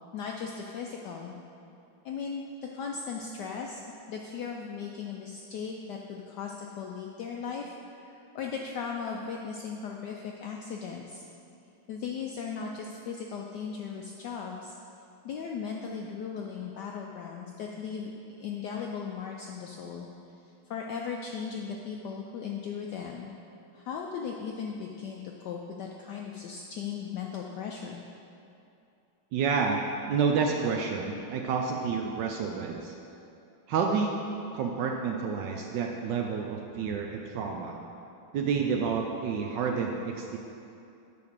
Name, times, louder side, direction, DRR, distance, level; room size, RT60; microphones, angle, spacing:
voice 1, 0.1-1.3 2.0-3.8 4.1-11.2 11.9-14.7 15.2-18.1 18.4-20.1 20.7-23.3 23.7-28.0, left 6 dB, 80° left, 0 dB, 0.9 m, -37 dB
voice 2, 29.3-32.9 33.7-34.2 34.5-37.8 38.3-40.4, right 5 dB, 75° right, 2 dB, 1.1 m, -29 dB
9.4 x 3.5 x 6.5 m, 2.7 s
omnidirectional pair, 2.3 m